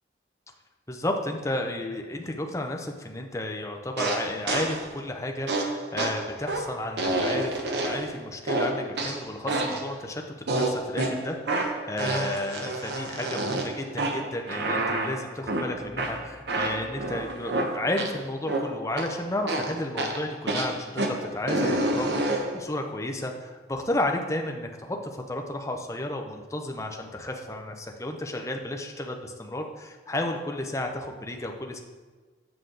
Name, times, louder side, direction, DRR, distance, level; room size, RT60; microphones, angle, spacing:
voice 1, 0.9-7.5 7.8-31.8, left 1 dB, 15° left, 3 dB, 0.6 m, -32 dB
sound 1, 4.0-4.9 5.5-8.1 8.5-9.9 10.5-18.2 18.5-19.2 19.5-22.6, right 2 dB, 65° right, 0.9 m, -29 dB
7.8 x 6.4 x 3.9 m, 1.4 s
head